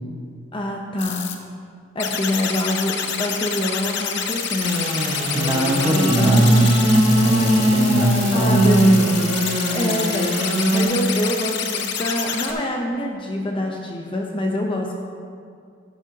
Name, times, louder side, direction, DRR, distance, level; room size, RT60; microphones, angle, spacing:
voice 1, 0.5-1.3 1.9-5.0 8.3-9.0 9.3-9.4 9.7-10.4 10.7-14.9, left 1 dB, 25° left, 0 dB, 0.7 m, -25 dB
sound 1, 1.0-1.4 2.0-12.5, left 7 dB, 60° left, 0.7 m, -28 dB
Engine / Sawing, 4.6-10.8, right 1 dB, 85° right, 1.8 m, -21 dB
voice 2, 5.3-8.9, right 1 dB, 15° right, -2 dB, 1.2 m, -19 dB
10.5 x 9.7 x 2.8 m, 2.2 s
head